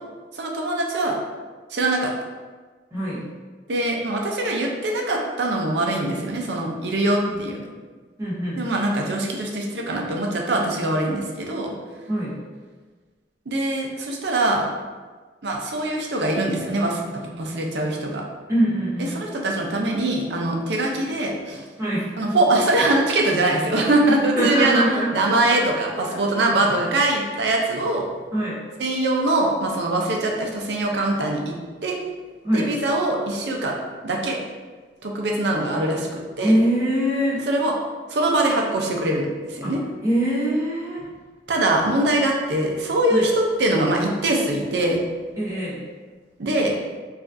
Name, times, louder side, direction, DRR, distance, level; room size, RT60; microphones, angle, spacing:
voice 1, 0.4-1.2 1.7-2.1 3.7-7.7 8.6-11.7 13.5-14.6 15.4-18.2 19.1-21.6 22.2-24.8 25.1-28.0 28.8-31.5 31.8-32.0 32.5-33.7 34.0-34.4 35.0-36.5 37.5-37.7 38.1-39.8 41.5-45.0 46.4-46.7, right 2 dB, 70° right, 0 dB, 0.6 m, -23 dB
voice 2, 2.9-3.3 8.2-8.6 12.1-12.4 18.5-19.2 21.8-22.4 24.0-25.5 26.1-26.6 28.3-28.6 32.4-32.8 36.4-37.4 39.6-39.8 40.0-41.1 43.1-43.3 45.4-45.9, right 1 dB, 15° right, -8 dB, 0.9 m, -23 dB
4.9 x 2.4 x 2.6 m, 1.4 s
head